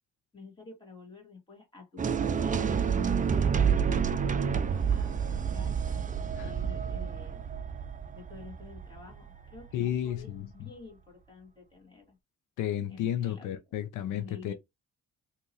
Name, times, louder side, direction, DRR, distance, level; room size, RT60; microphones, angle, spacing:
voice 1, 0.3-2.8 3.2-6.0 6.4-7.4 8.1-12.2 12.9-13.6 14.1-14.5, left 4 dB, 15° left, 2.3 m, -49 dB
sound 1, 2.0-10.0, right 7 dB, 25° right, 0.4 m, -29 dB
voice 2, 9.7-10.7 12.6-14.5, left 11 dB, 80° left, 0.6 m, -32 dB
3.5 x 2.9 x 3.1 m
cardioid pair, 90°, 30 cm